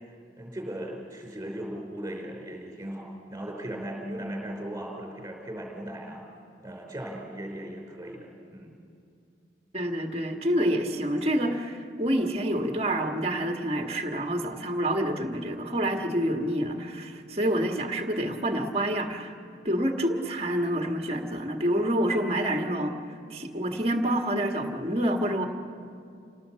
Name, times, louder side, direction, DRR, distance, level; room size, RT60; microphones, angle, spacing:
voice 1, 0.4-6.2 6.6-8.7, right 1 dB, 15° right, 1 dB, 4.8 m, -37 dB
voice 2, 9.7-19.3 19.6-22.9 23.3-25.5, right 1 dB, 35° right, 3 dB, 1.7 m, -27 dB
28.0 x 18.5 x 7.6 m, 2.4 s
head